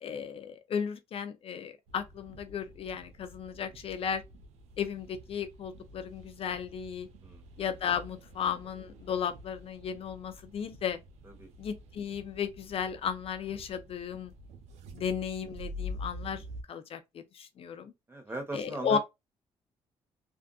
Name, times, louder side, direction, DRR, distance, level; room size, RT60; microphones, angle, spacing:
voice 1, 0.0-4.2 4.8-7.1 7.6-11.0 11.6-14.3 14.9-17.9 18.5-19.0, left 7 dB, 60° left, 0.5 m, -35 dB
sound 1, 1.9-16.6, left 1 dB, 85° right, 0.7 m, -47 dB
voice 2, 18.1-19.0, right 2 dB, 20° right, 1.5 m, -39 dB
3.5 x 2.5 x 2.4 m
cardioid pair, 75°, 11 cm